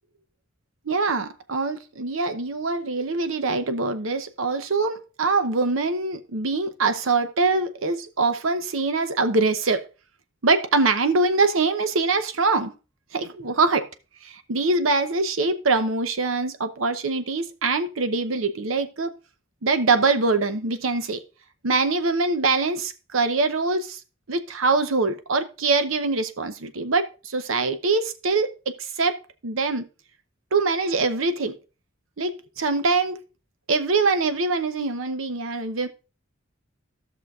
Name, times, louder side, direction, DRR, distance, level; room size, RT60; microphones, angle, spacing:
voice 1, 0.9-9.9 10.4-12.7 13.1-13.9 14.2-19.1 19.6-21.2 21.6-24.0 24.3-29.9 30.5-31.6 32.2-33.2 33.7-35.9, right 3 dB, 90° right, 0.8 m, -23 dB
14.5 x 6.3 x 2.4 m
head